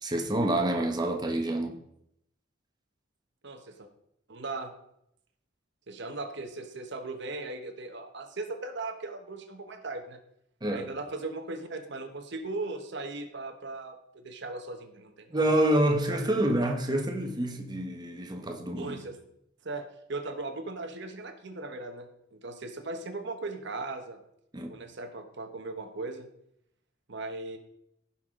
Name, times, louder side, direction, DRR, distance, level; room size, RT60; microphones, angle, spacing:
voice 1, 0.0-1.8 10.6-10.9 15.3-19.0 24.5-24.7, right 1 dB, 20° right, 3 dB, 1.2 m, -27 dB
voice 2, 3.4-3.9 4.3-4.7 5.9-10.2 10.7-15.5 16.1-16.2 18.8-19.2 19.6-24.2 24.7-26.3 27.1-27.6, right 3 dB, 60° right, 6 dB, 1.1 m, -38 dB
15.5 x 5.8 x 3.8 m, 0.76 s
head